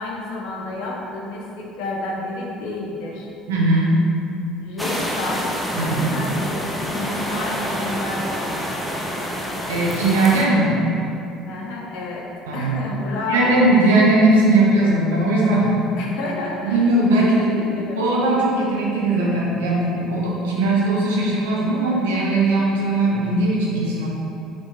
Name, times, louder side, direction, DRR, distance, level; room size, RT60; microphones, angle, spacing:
voice 1, 0.0-3.3 4.6-8.7 11.5-13.7 14.8-14.9 16.0-16.8 17.2-18.1, left 2 dB, 65° left, -2 dB, 0.4 m, -30 dB
voice 2, 3.5-4.0 5.8-6.1 9.7-10.8 12.5-12.7 13.3-16.0 16.6-24.1, right 2 dB, 80° right, -4 dB, 0.5 m, -19 dB
sound 1, 4.8-10.5, equal, 5° left, 0.4 m, -27 dB
3.0 x 2.1 x 2.6 m, 2.8 s
hypercardioid pair, 65°, 0 cm